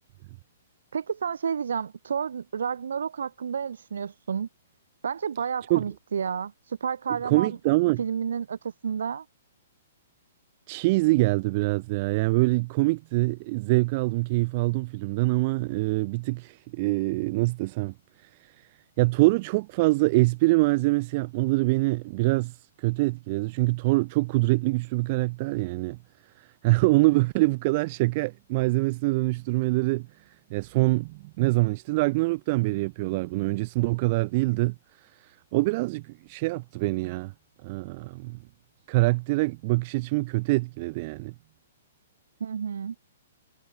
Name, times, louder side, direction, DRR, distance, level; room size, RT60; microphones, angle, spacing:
voice 1, 0.9-4.5 5.0-7.6 8.0-9.3 42.4-43.0, right 7 dB, 85° right, 0.5 m, -30 dB
voice 2, 7.2-8.0 10.7-17.9 18.2-18.7 19.0-26.0 26.4-37.3 37.6-38.4 38.9-41.3, right 23 dB, 30° right, 0.8 m, -25 dB
hypercardioid pair, 175°, 0 cm